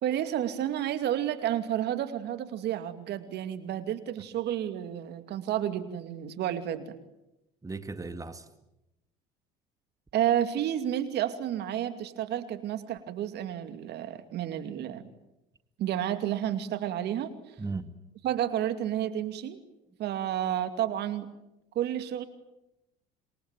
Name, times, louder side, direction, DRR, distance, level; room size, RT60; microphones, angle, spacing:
voice 1, 0.0-6.9 10.1-15.0 15.8-17.5 18.2-19.6 20.0-21.3 21.7-22.2, right 11 dB, 60° right, 10 dB, 2.5 m, -31 dB
voice 2, 7.6-8.5 17.6-17.9, right 3 dB, 15° right, 10 dB, 2.1 m, -36 dB
27.5 x 22.5 x 9.2 m, 0.90 s
supercardioid pair, 80°, 19 cm